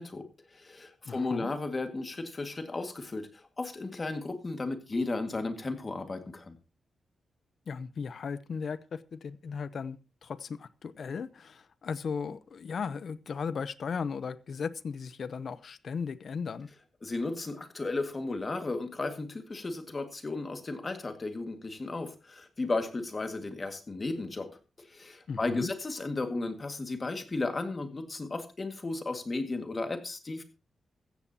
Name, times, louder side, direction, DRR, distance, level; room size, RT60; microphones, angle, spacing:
voice 1, 0.0-6.6 17.0-30.4, left 3 dB, 30° left, 2.0 m, -34 dB
voice 2, 1.0-1.5 7.7-16.7 25.3-25.7, left 6 dB, 55° left, 0.7 m, -36 dB
15.0 x 14.5 x 2.9 m
wide cardioid pair, 130°, 0 cm